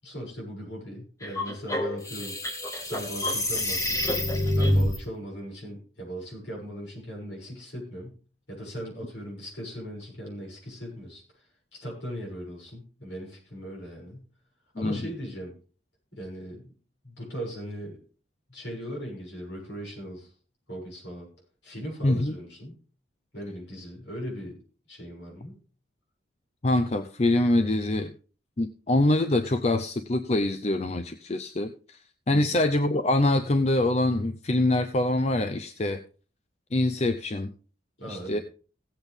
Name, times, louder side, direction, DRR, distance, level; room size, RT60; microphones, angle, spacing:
voice 1, 0.0-4.2 4.5-8.1 8.5-14.3 14.8-15.5 16.1-16.7 17.0-18.0 18.5-20.3 20.7-21.3 21.6-22.8 23.3-24.6 24.9-25.6 32.3-32.6 38.0-38.4, equal, 65° left, -1 dB, 6.9 m, -39 dB
sound 1, 1.2-5.0, left 1 dB, 15° left, 1.4 m, -27 dB
voice 2, 22.0-22.4 26.6-28.1 28.6-32.0 32.3-36.0 36.7-37.5 38.1-38.4, left 1 dB, 35° left, 10 dB, 0.5 m, -24 dB
17.0 x 8.1 x 3.6 m, 0.38 s
head